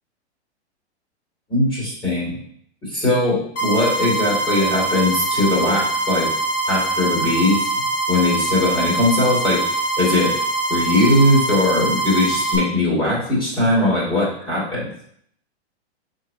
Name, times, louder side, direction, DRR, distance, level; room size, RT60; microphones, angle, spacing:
voice 1, 1.5-2.4 2.8-6.3 6.7-7.7 8.1-9.6 10.0-10.3 10.7-14.9, left 2 dB, 15° left, -5 dB, 2.9 m, -19 dB
sound 1, 3.6-12.6, right 2 dB, 55° left, 2.5 m, -23 dB
6.5 x 6.5 x 2.9 m, 0.67 s
hypercardioid pair, 170°, 34 cm